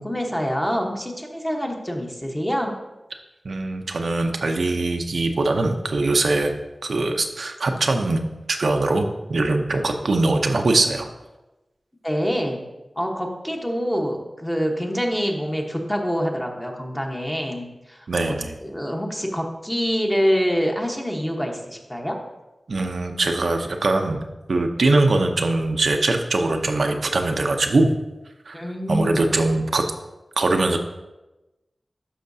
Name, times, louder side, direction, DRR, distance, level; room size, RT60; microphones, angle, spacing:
voice 1, 0.0-2.7 12.0-12.6 13.0-22.2 28.5-29.2, equal, 10° left, 1 dB, 1.1 m, -26 dB
voice 2, 3.4-6.5 6.8-8.2 8.5-11.1 18.1-18.5 22.7-27.9 28.5-28.6 28.9-29.8 30.4-30.8, right 2 dB, 75° right, 4 dB, 0.6 m, -22 dB
12.0 x 5.6 x 2.7 m, 1.0 s
wide cardioid pair, 90°, 0 cm